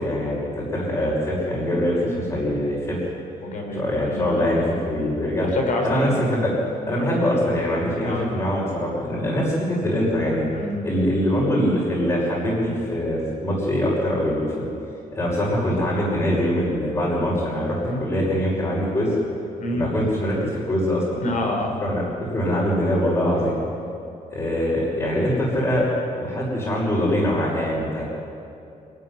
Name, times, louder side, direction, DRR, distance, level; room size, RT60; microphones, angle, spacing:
voice 1, 0.0-3.0 3.7-5.5 5.8-6.6 6.9-10.4 10.8-14.5 15.1-19.1 19.7-21.2 21.8-22.0 22.3-23.6 24.3-25.9 26.2-28.0, equal, 25° left, -8 dB, 5.7 m, -23 dB
voice 2, 2.0-2.4 3.4-4.5 5.5-6.2 8.0-8.3 10.5-10.9 17.8-18.0 19.6-19.9 21.2-21.7 23.3-23.5, left 2 dB, 60° left, 2 dB, 4.3 m, -28 dB
26.0 x 13.5 x 9.9 m, 2.7 s
cardioid pair, 160°, 14 cm